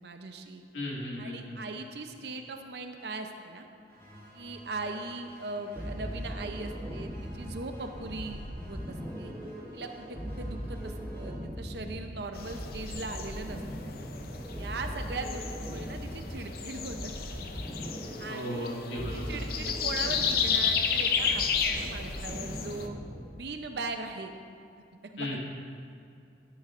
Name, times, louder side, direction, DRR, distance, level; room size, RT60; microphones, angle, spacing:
voice 1, 0.0-0.6 1.2-3.7 4.3-9.3 9.7-13.9 14.6-17.5 18.2-18.7 19.3-23.0 23.3-24.3 25.1-25.4, right 3 dB, 65° right, 6 dB, 0.7 m, -39 dB
voice 2, 0.7-1.6 18.3-19.4 25.2-25.4, left 1 dB, 90° left, -4 dB, 2.1 m, -35 dB
sound 1, 3.9-11.4, equal, 15° left, 2.3 m, -52 dB
sound 2, 5.8-23.4, equal, 10° right, 0.9 m, -39 dB
sound 3, 12.4-22.9, left 6 dB, 55° left, 0.6 m, -32 dB
12.5 x 9.4 x 2.6 m, 2.6 s
head